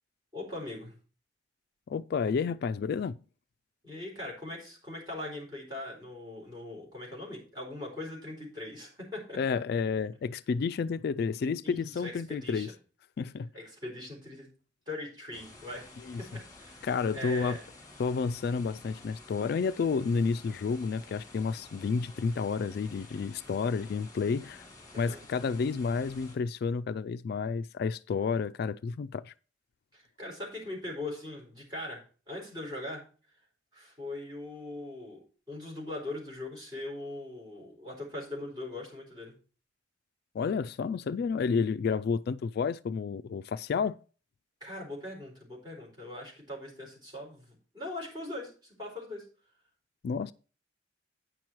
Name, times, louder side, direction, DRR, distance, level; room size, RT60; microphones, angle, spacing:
voice 1, 0.3-0.9 3.8-9.4 11.6-12.7 13.5-14.5 14.9-15.8 16.2-16.9 17.1-17.6 24.9-25.2 29.9-32.0 32.3-33.0 33.7-39.3 44.6-49.3, left 2 dB, 25° right, 4.4 m, -41 dB
voice 2, 1.9-3.2 9.3-12.7 13.2-13.5 16.1-16.2 16.8-17.6 18.0-24.6 25.0-29.3 40.3-44.0 50.0-50.3, left 5 dB, 55° left, 0.3 m, -30 dB
sound 1, 15.3-26.4, left 2 dB, 20° left, 2.2 m, -52 dB
9.4 x 6.0 x 4.6 m
head